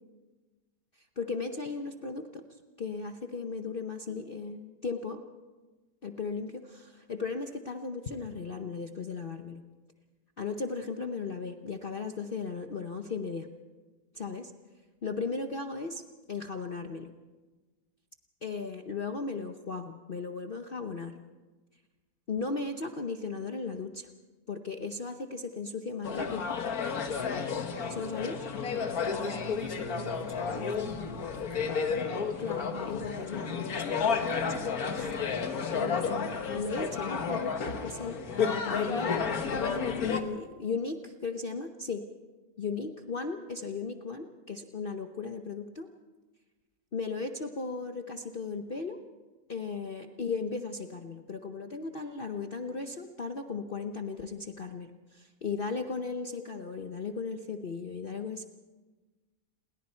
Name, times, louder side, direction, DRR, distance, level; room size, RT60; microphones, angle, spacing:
voice 1, 1.2-2.4 2.8-5.2 6.0-9.6 10.4-13.5 14.1-14.5 15.0-16.0 16.3-17.1 18.4-21.1 22.3-24.1 24.5-26.4 27.9-28.5 32.4-35.1 35.7-42.0 42.6-45.9 46.9-49.0 49.5-58.5, left 4 dB, 40° left, 5 dB, 0.9 m, -36 dB
sound 1, 26.0-40.2, left 6 dB, 60° left, 1.8 m, -32 dB
voice 2, 29.2-31.8, right 2 dB, 20° right, 4 dB, 1.1 m, -44 dB
29.0 x 21.0 x 4.5 m, 1.3 s
omnidirectional pair, 1.8 m